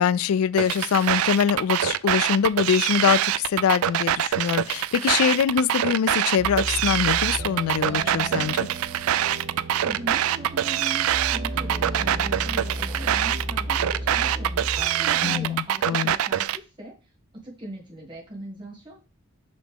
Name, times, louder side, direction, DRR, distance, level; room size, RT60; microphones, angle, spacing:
voice 1, 0.0-8.7 15.2-16.1, left 8 dB, 90° left, 0.3 m, -23 dB
sound 1, 0.6-16.6, right 11 dB, 90° right, 0.4 m, -24 dB
sound 2, 6.4-15.4, right 1 dB, 45° right, 0.9 m, -34 dB
voice 2, 9.8-17.1 17.4-19.0, right 1 dB, 20° right, 2.2 m, -40 dB
sound 3, 9.9-14.7, right 1 dB, 15° left, 2.3 m, -50 dB
6.0 x 5.1 x 3.5 m
head